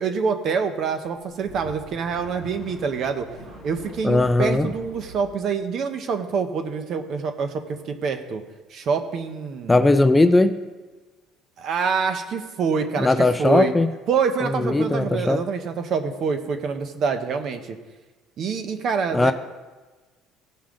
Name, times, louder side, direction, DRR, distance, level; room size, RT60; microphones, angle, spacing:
voice 1, 0.0-3.3 3.6-8.4 8.7-9.8 11.6-13.7 14.1-17.8 18.4-19.3, right 5 dB, 55° right, 7 dB, 0.9 m, -26 dB
sound 1, 1.1-5.3, right 3 dB, 70° right, 2.2 m, -43 dB
voice 2, 4.0-4.7 9.7-10.5 13.0-13.9 14.6-15.4 19.1-19.3, left 2 dB, 10° left, 10 dB, 0.4 m, -18 dB
15.5 x 5.6 x 3.8 m, 1.2 s
cardioid pair, 110°, 0 cm